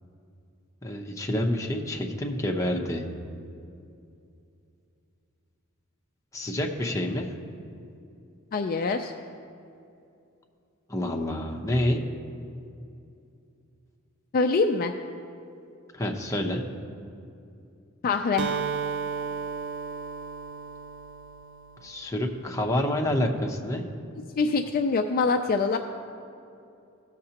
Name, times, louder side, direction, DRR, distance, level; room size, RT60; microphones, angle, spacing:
voice 1, 0.8-3.0 6.3-7.3 10.9-12.0 15.9-16.6 21.8-23.8, left 1 dB, 15° left, 1 dB, 0.8 m, -28 dB
voice 2, 8.5-9.1 14.3-14.9 18.0-18.5 24.4-25.8, left 4 dB, 45° left, 5 dB, 0.3 m, -24 dB
Acoustic guitar, 18.4-22.2, right 5 dB, 50° right, 0.3 m, -34 dB
17.0 x 6.6 x 2.9 m, 2.6 s
head